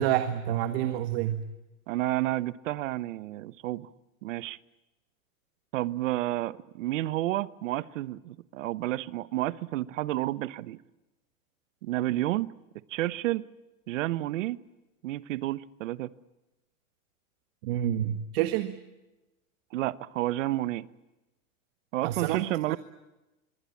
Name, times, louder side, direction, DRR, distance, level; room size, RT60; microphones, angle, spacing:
voice 1, 0.0-1.4 17.6-18.8 22.0-22.8, right 11 dB, 45° right, 9 dB, 1.7 m, -28 dB
voice 2, 1.9-3.9 4.2-4.6 5.7-10.8 11.8-12.5 12.9-13.4 13.9-14.6 15.0-16.1 19.7-20.9 21.9-22.8, right 16 dB, 60° right, 17 dB, 1.1 m, -30 dB
25.5 x 24.0 x 8.5 m, 1.0 s
supercardioid pair, 160°, 42 cm